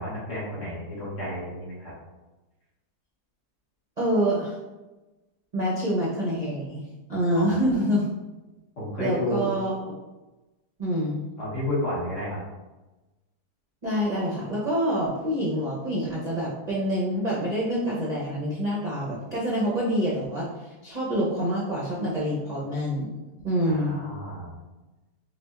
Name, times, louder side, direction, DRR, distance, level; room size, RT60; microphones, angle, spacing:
voice 1, 0.0-1.9 7.3-7.6 8.8-9.5 11.4-12.4 23.6-24.6, left 1 dB, 50° left, -7 dB, 1.6 m, -31 dB
voice 2, 4.0-4.6 5.5-6.8 7.1-8.1 9.0-9.7 10.8-11.2 13.8-23.1 23.4-24.0, equal, 45° right, -7 dB, 0.5 m, -26 dB
5.7 x 2.2 x 2.4 m, 1.1 s
omnidirectional pair, 1.7 m